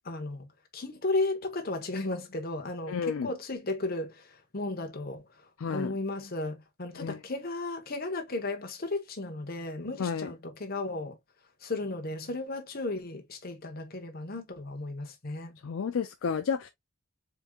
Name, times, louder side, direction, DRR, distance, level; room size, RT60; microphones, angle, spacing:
voice 1, 0.0-0.5 0.7-5.2 5.7-11.2 11.6-15.6, left 2 dB, 45° left, 1.0 m, -34 dB
voice 2, 2.9-3.3 5.6-5.9 7.0-7.2 10.0-10.3 15.6-16.7, left 6 dB, 65° left, 0.4 m, -31 dB
4.4 x 3.6 x 2.3 m
head